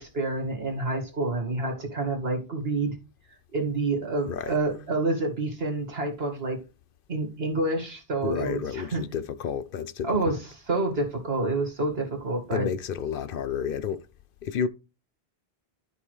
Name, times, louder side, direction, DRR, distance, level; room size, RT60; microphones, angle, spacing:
voice 1, 0.0-3.0 3.5-6.6 7.1-9.0 10.0-12.7, right 2 dB, 75° right, 2.2 m, -28 dB
voice 2, 8.2-10.1 12.5-14.0 14.4-14.7, left 7 dB, 65° left, 0.8 m, -30 dB
12.5 x 5.4 x 3.2 m
omnidirectional pair, 1.0 m